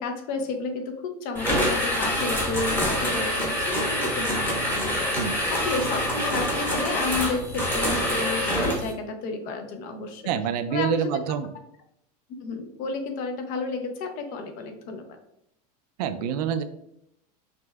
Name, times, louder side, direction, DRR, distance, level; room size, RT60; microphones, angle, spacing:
voice 1, 0.0-10.3 10.7-11.2 12.4-15.2, left 4 dB, 45° left, 6 dB, 0.7 m, -32 dB
sound 1, 1.3-8.9, equal, 10° left, 1.1 m, -26 dB
voice 2, 10.2-11.5 16.0-16.6, right 8 dB, 75° right, 9 dB, 0.5 m, -26 dB
5.1 x 3.2 x 2.3 m, 0.78 s
supercardioid pair, 145°, 20 cm